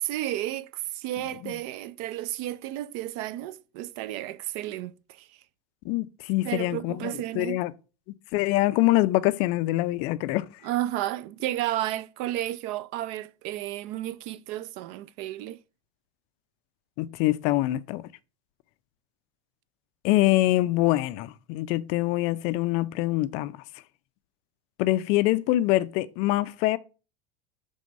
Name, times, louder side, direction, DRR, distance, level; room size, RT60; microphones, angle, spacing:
voice 1, 0.0-5.3 6.4-7.6 10.6-15.6, right 14 dB, 45° right, 0.4 m, -32 dB
voice 2, 5.9-7.7 8.3-10.4 17.0-18.0 20.0-23.5 24.8-26.8, left 17 dB, 45° left, 0.4 m, -24 dB
6.3 x 3.4 x 5.3 m
supercardioid pair, 170°, 15 cm